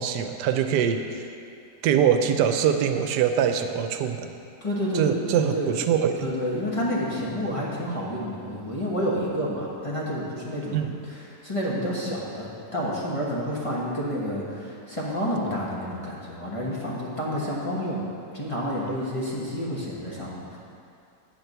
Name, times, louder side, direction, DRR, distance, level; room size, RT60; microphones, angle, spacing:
voice 1, 0.0-1.3 1.8-4.3 4.9-6.3 10.7-11.0, right 8 dB, 90° right, 7 dB, 1.2 m, -23 dB
voice 2, 4.6-5.8 6.2-18.0 18.3-20.6, equal, 20° left, -6 dB, 1.1 m, -29 dB
8.6 x 4.6 x 6.7 m, 2.5 s
omnidirectional pair, 1.7 m